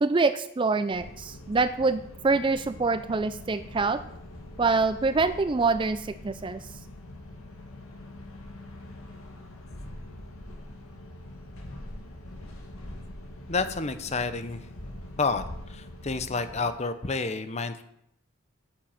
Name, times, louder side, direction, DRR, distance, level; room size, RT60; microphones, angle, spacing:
voice 1, 0.0-4.0 4.6-6.6, right 3 dB, 25° right, 13 dB, 0.4 m, -25 dB
sound 1, 0.9-16.8, left 1 dB, 90° left, 2.4 m, -43 dB
voice 2, 13.5-14.6 15.2-17.8, left 4 dB, 30° left, 11 dB, 0.8 m, -29 dB
9.1 x 7.6 x 7.5 m, 0.76 s
head